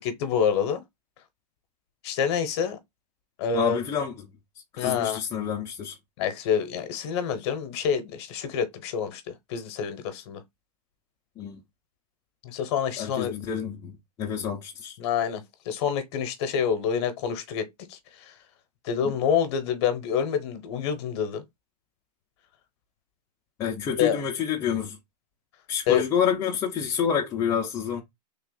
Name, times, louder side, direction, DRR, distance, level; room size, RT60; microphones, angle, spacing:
voice 1, 0.0-0.8 2.0-2.8 3.4-3.8 4.8-5.2 6.2-10.4 12.4-13.3 15.0-18.4 18.8-21.4 24.0-24.2 25.9-26.1, left 7 dB, 40° left, 0.8 m, -27 dB
voice 2, 3.5-4.3 4.7-6.0 11.4-11.6 13.0-15.0 23.6-25.0 25.7-28.0, left 8 dB, 15° left, 0.4 m, -28 dB
3.4 x 2.3 x 3.7 m
hypercardioid pair, 150°, 21 cm